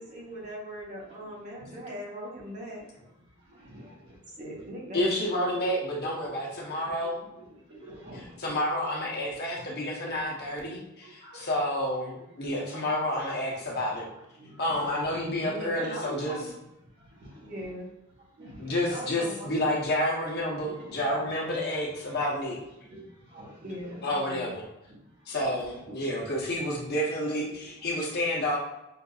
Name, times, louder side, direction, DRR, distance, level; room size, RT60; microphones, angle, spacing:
voice 1, 0.0-2.9 4.4-5.4 15.4-16.5 17.3-17.9 18.9-19.7 23.6-24.5, equal, 35° right, -3 dB, 1.1 m, -40 dB
voice 2, 3.3-4.2 4.5-4.6 7.4-8.5 9.5-9.7 11.0-11.6 12.6-12.9 14.1-15.4 17.0-17.7 18.4-19.1 20.5-21.3 22.9-24.0 24.9-25.6 27.5-27.6, equal, 55° right, -4 dB, 1.4 m, -49 dB
voice 3, 4.9-7.2 8.4-14.1 14.6-16.4 18.6-22.6 24.0-24.6 25.3-28.6, left 1 dB, 50° left, -2 dB, 1.0 m, -29 dB
5.7 x 2.6 x 2.4 m, 0.90 s
head